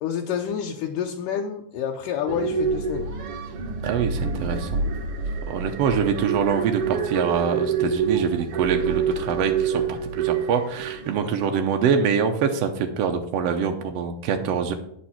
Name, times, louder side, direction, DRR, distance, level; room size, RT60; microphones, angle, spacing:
voice 1, 0.0-3.1 11.2-11.5, left 8 dB, 80° left, 1 dB, 2.3 m, -29 dB
sound 1, 2.3-11.2, right 5 dB, 60° right, 1.5 m, -27 dB
voice 2, 3.8-4.8 5.5-14.7, right 7 dB, 80° right, 5 dB, 1.4 m, -25 dB
8.8 x 6.4 x 5.8 m, 0.72 s
omnidirectional pair, 3.8 m